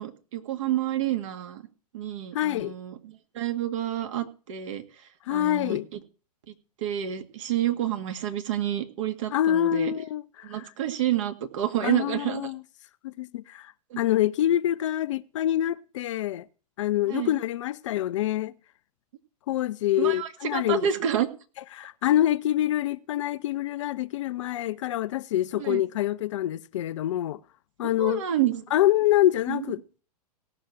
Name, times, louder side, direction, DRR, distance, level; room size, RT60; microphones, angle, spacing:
voice 1, 0.0-1.6 1.9-4.8 5.3-6.0 6.5-9.9 10.4-12.5 13.9-14.0 17.1-17.4 20.0-21.3 25.5-25.8 27.8-28.6 29.5-29.6, right 11 dB, 50° right, 2.1 m, -29 dB
voice 2, 2.3-2.7 5.3-5.9 9.3-10.7 11.8-12.6 13.0-16.5 16.8-18.5 19.5-20.9 21.7-27.4 27.8-28.3 28.7-30.0, left 13 dB, 50° left, 0.6 m, -26 dB
17.5 x 6.4 x 7.2 m
figure-of-eight pair, 110°, 20 cm